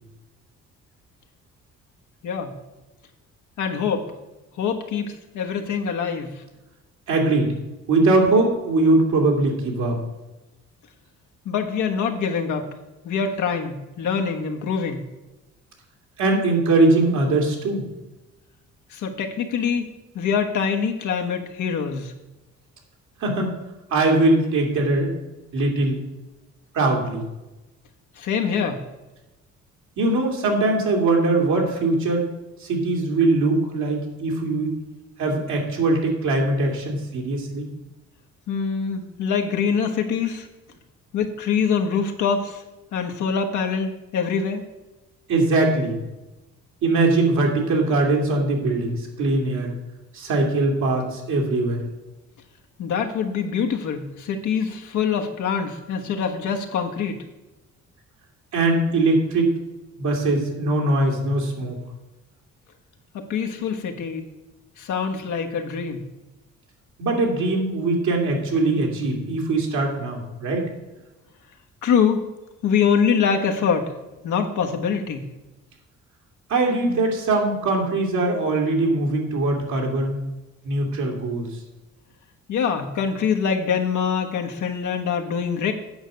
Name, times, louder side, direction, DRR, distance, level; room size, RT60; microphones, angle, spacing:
voice 1, 2.2-2.5 3.6-4.1 4.6-6.4 11.4-12.7 13.0-15.0 18.9-22.1 28.2-28.8 38.5-40.5 41.1-42.6 42.9-44.6 52.8-57.2 63.1-64.3 64.8-66.0 71.8-72.3 72.6-73.9 74.2-75.3 82.5-85.7, left 6 dB, 75° left, 4 dB, 1.3 m, -24 dB
voice 2, 7.1-7.5 7.9-10.0 16.2-17.8 23.2-23.5 23.9-25.1 25.5-26.0 26.7-27.2 30.0-32.3 32.6-34.7 35.2-37.7 45.3-46.0 46.8-49.7 50.1-51.8 58.5-59.5 60.0-61.7 67.0-70.7 76.5-80.2 80.6-81.5, right 2 dB, 75° right, 0 dB, 2.5 m, -21 dB
8.9 x 5.0 x 6.7 m, 1.0 s
cardioid pair, 90°, 30 cm